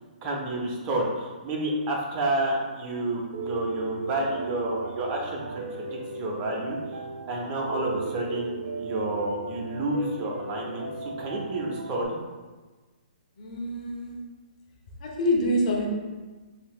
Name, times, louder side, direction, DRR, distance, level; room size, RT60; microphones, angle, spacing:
voice 1, 0.2-6.8 7.3-12.2, right 1 dB, 30° right, -1 dB, 0.7 m, -30 dB
Piano, 3.3-12.0, right 3 dB, 70° right, 0.4 m, -36 dB
voice 2, 13.4-14.2 15.0-15.9, left 1 dB, 50° left, -2 dB, 0.8 m, -26 dB
3.4 x 2.7 x 2.4 m, 1.3 s
hypercardioid pair, 130°, 5 cm